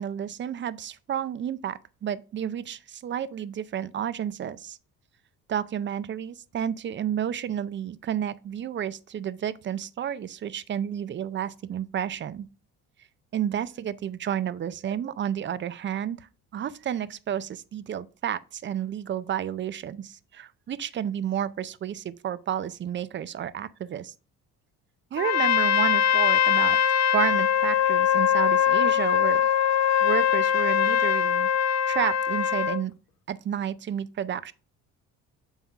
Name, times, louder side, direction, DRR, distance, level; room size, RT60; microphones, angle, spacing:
voice 1, 0.0-4.8 5.5-12.5 13.3-16.3 16.5-24.1 25.1-26.8 27.1-29.4 30.0-31.5 31.9-32.9 33.3-34.5, right 9 dB, 35° right, 0.5 m, -31 dB
Trumpet, 25.2-32.8, left 9 dB, 50° left, 0.7 m, -22 dB
7.0 x 5.6 x 3.4 m
cardioid pair, 110°, 33 cm